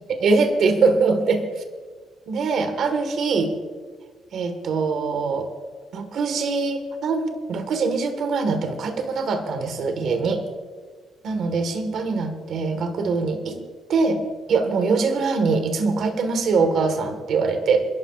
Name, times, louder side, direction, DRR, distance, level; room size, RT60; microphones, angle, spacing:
voice 1, 0.2-1.6 2.3-3.5 4.3-5.5 5.9-10.4 11.2-13.6 13.9-14.2 14.5-17.8, right 4 dB, 60° right, 6 dB, 1.6 m, -23 dB
30.0 x 11.5 x 2.5 m, 1.5 s
cardioid pair, 145°, 0 cm